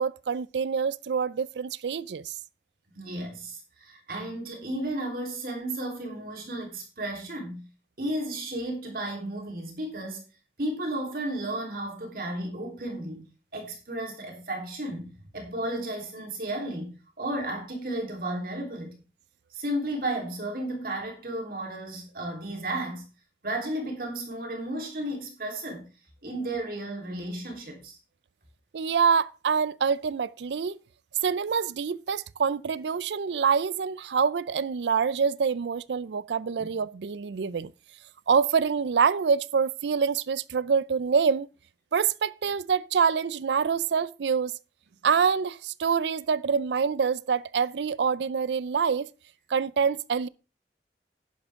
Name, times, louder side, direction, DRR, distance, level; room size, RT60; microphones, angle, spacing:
voice 1, 0.0-2.3 28.7-30.8 31.2-37.7 38.3-41.5 41.9-44.5 45.0-49.1 49.5-50.3, right 6 dB, 80° right, 0.4 m, -26 dB
voice 2, 2.9-7.7 8.0-10.2 10.6-19.0 19.5-23.0 23.4-25.9 26.2-28.0 36.6-36.7, right 1 dB, 55° right, 3.7 m, -33 dB
10.5 x 10.0 x 3.6 m
head